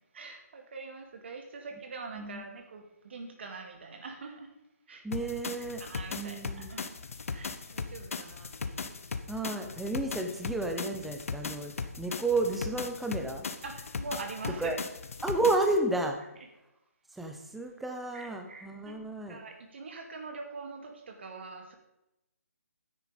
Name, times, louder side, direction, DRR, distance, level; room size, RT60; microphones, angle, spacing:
voice 1, 0.1-4.5 4.9-5.3 5.8-7.0 7.3-8.9 13.6-14.8 18.1-21.8, right 4 dB, 45° right, 4 dB, 2.2 m, -43 dB
voice 2, 5.0-5.8 6.1-6.7 9.3-13.5 14.6-14.8 15.2-16.2 17.2-19.4, right 2 dB, ahead, 4 dB, 0.6 m, -32 dB
sound 1, 5.1-15.8, left 5 dB, 60° left, 1.1 m, -38 dB
9.8 x 9.1 x 5.0 m, 0.88 s
hypercardioid pair, 165°, 9 cm